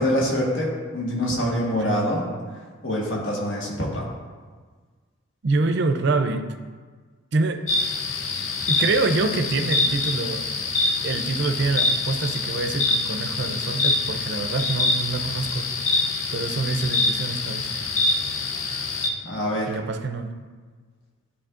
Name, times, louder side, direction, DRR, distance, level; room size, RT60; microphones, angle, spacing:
voice 1, 0.0-2.2 2.8-4.1 19.2-19.8, equal, 60° left, -4 dB, 1.5 m, -25 dB
voice 2, 5.4-6.5 7.3-7.7 8.7-10.5 11.0-15.7 16.3-17.7 19.7-20.4, right 3 dB, 55° right, 7 dB, 0.5 m, -26 dB
sound 1, 7.7-19.1, left 3 dB, 75° left, 0.6 m, -25 dB
11.5 x 4.2 x 2.5 m, 1.5 s
head